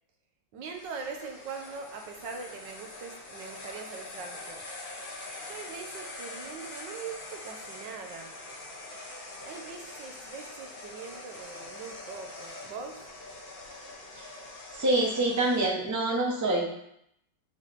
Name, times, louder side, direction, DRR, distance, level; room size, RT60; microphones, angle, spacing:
voice 1, 0.5-4.6 5.4-8.3 9.4-13.0, right 5 dB, 85° right, 3 dB, 1.6 m, -42 dB
sound 1, 0.6-15.7, left 2 dB, 40° left, 0.9 m, -44 dB
voice 2, 14.7-16.7, right 2 dB, 15° right, -2 dB, 0.8 m, -26 dB
8.7 x 3.3 x 4.2 m, 0.75 s
omnidirectional pair, 1.9 m